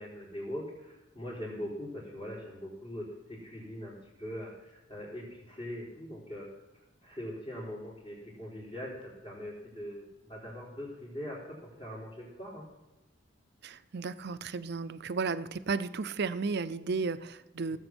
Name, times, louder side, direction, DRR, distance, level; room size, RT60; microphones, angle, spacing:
voice 1, 0.0-6.5 7.0-12.7 17.7-17.8, equal, 30° left, -8 dB, 4.4 m, -42 dB
voice 2, 13.6-17.8, right 4 dB, 60° right, 13 dB, 0.6 m, -34 dB
18.0 x 8.0 x 6.2 m, 1.1 s
head